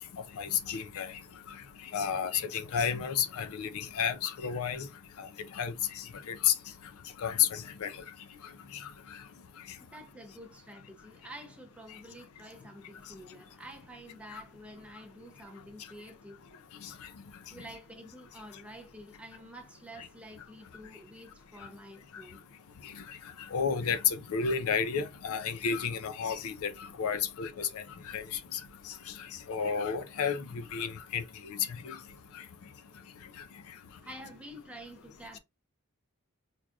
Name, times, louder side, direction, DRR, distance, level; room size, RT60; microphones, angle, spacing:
voice 1, 0.4-1.1 1.9-4.9 5.2-5.3 5.6-6.5 7.2-7.9 23.5-26.7 27.0-27.8 28.1-28.2 28.5-28.6 29.5-31.2 31.9-32.0, left 7 dB, 70° left, 0.4 m, -31 dB
voice 2, 9.8-16.4 17.5-22.4 34.0-35.4, right 1 dB, 5° right, 0.5 m, -49 dB
4.6 x 2.5 x 2.3 m
head